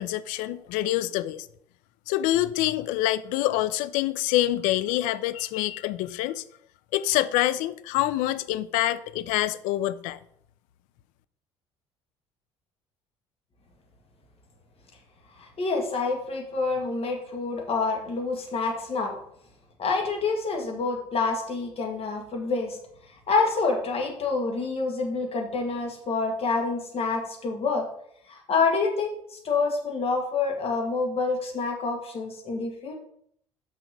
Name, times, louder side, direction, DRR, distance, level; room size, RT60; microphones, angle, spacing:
voice 1, 0.0-1.5 2.1-6.4 6.9-10.2, left 14 dB, 65° left, 0.5 m, -26 dB
voice 2, 15.4-19.2 19.8-22.8 23.3-27.9 28.3-32.9, left 4 dB, 45° left, 2.0 m, -27 dB
6.1 x 4.8 x 6.5 m
figure-of-eight pair, 55°, 15 cm